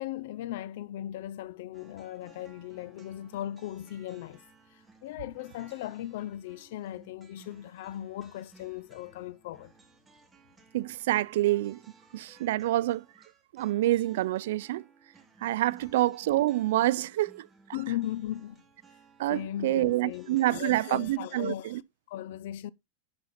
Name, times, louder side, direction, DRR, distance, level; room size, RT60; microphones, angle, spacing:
voice 1, 0.0-4.4 4.7-9.7 17.7-18.6 19.3-21.8 22.1-22.7, left 13 dB, 65° left, 0.6 m, -37 dB
sound 1, 1.7-21.5, right 4 dB, 10° right, 1.5 m, -59 dB
voice 2, 10.7-11.8 12.1-13.1 13.5-14.8 15.4-17.5 19.2-21.8, right 15 dB, 70° right, 0.4 m, -27 dB
11.5 x 4.4 x 4.2 m
supercardioid pair, 155°, 0 cm